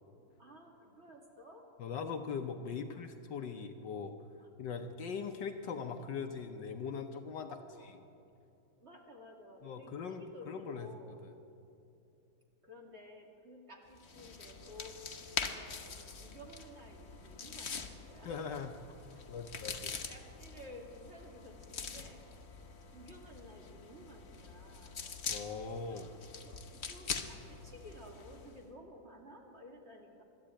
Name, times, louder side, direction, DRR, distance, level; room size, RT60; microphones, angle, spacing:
voice 1, 0.4-1.7 2.7-3.1 4.4-4.5 7.5-7.9 8.8-11.2 12.6-15.0 15.3-18.3 19.1-19.2 19.5-22.2 22.9-25.0 25.8-30.2, equal, 30° right, 0 dB, 2.5 m, -54 dB
voice 2, 1.8-4.1 4.6-7.6 7.8-7.9 9.6-10.9 11.2-11.3 18.2-18.7 19.3-19.9 25.3-26.1, left 6 dB, 65° left, 6 dB, 1.4 m, -40 dB
sound 1, 13.9-28.6, left 5 dB, 40° left, 1.1 m, -44 dB
22.0 x 13.5 x 8.9 m, 2.7 s
omnidirectional pair, 2.3 m